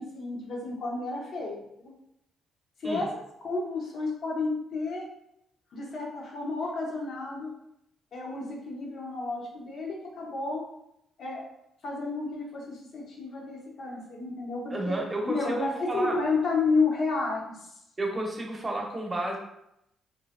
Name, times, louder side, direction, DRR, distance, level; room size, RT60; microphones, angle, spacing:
voice 1, 0.0-1.9 2.8-3.1 3.4-5.1 5.7-7.5 8.1-10.6 11.2-11.5 11.8-15.0 15.2-17.7, left 3 dB, 60° left, -1 dB, 0.8 m, -31 dB
voice 2, 14.7-16.2 18.0-19.4, right 1 dB, 20° right, 0 dB, 0.8 m, -31 dB
3.2 x 2.8 x 2.5 m, 0.80 s
cardioid pair, 90°, 0 cm